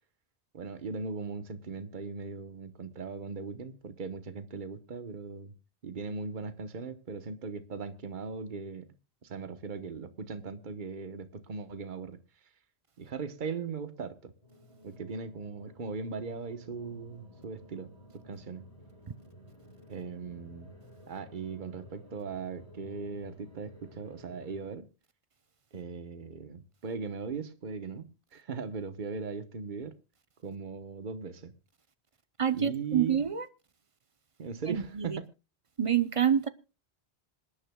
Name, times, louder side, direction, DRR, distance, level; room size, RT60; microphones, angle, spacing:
voice 1, 0.5-5.5 5.8-8.9 9.2-12.2 13.0-14.3 14.8-17.9 18.2-18.6 19.9-20.7 21.1-24.9 25.7-30.0 30.4-31.5 32.5-33.2 34.4-35.2, right 5 dB, 50° right, 1.2 m, -39 dB
sound 1, 14.4-24.7, equal, 35° left, 3.8 m, -54 dB
voice 2, 32.4-33.5 34.7-35.2 35.8-36.5, right 8 dB, 35° right, 0.7 m, -27 dB
26.5 x 10.0 x 2.2 m
omnidirectional pair, 1.1 m